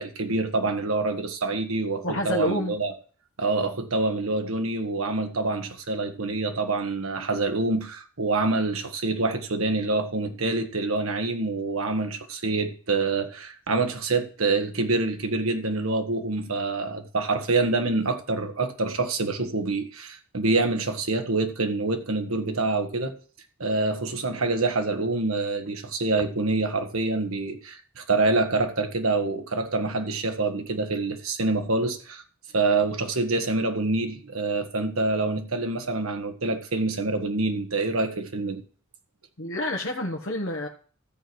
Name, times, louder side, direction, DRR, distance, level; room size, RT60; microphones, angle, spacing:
voice 1, 0.0-2.9 3.4-23.1 23.6-32.2 32.5-38.6, right 3 dB, 75° right, 1.4 m, -26 dB
voice 2, 2.0-2.7 39.4-40.7, left 1 dB, 60° left, 1.3 m, -28 dB
13.5 x 4.6 x 7.8 m
head